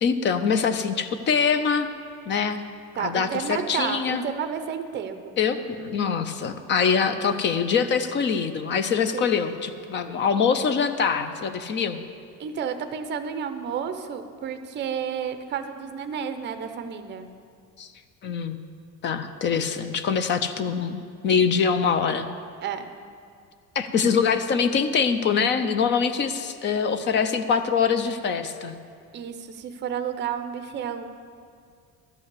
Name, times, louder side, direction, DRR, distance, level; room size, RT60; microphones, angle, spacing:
voice 1, 0.0-1.9 2.3-2.6 3.0-4.2 5.4-12.0 17.8-17.9 18.2-18.6 19.0-22.3 23.8-28.7, left 6 dB, 35° left, 10 dB, 0.5 m, -24 dB
voice 2, 3.0-5.3 9.1-9.3 12.4-17.3 22.6-22.9 29.1-31.1, right 7 dB, 35° right, 9 dB, 0.6 m, -31 dB
12.5 x 5.6 x 8.2 m, 2.3 s
cardioid pair, 180°, 32 cm